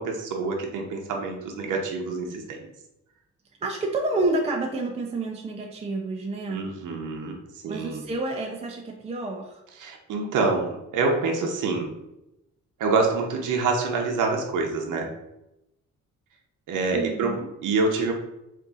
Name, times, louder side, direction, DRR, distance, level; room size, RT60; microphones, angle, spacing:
voice 1, 0.0-2.6 6.5-7.4 7.6-8.1 9.8-11.9 12.8-15.1 16.7-18.1, right 3 dB, 85° right, 1 dB, 0.7 m, -26 dB
voice 2, 3.6-6.7 7.7-9.6 16.9-17.5, right 2 dB, 20° right, 0 dB, 0.4 m, -29 dB
3.6 x 2.6 x 3.9 m, 0.90 s
cardioid pair, 130°, 30 cm